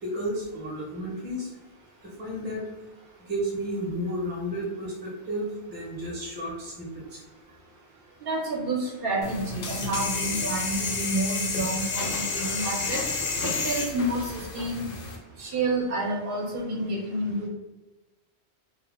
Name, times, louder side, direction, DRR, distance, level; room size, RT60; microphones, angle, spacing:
voice 1, 0.0-1.5 2.0-2.7 3.3-7.2 13.4-13.5, equal, 10° right, -5 dB, 0.5 m, -32 dB
voice 2, 8.2-13.0 13.4-14.9 15.4-17.5, right 2 dB, 65° right, -2 dB, 0.8 m, -29 dB
sound 1, 9.2-15.2, left 4 dB, 60° left, 0.7 m, -30 dB
2.3 x 2.1 x 3.3 m, 1.1 s
omnidirectional pair, 1.1 m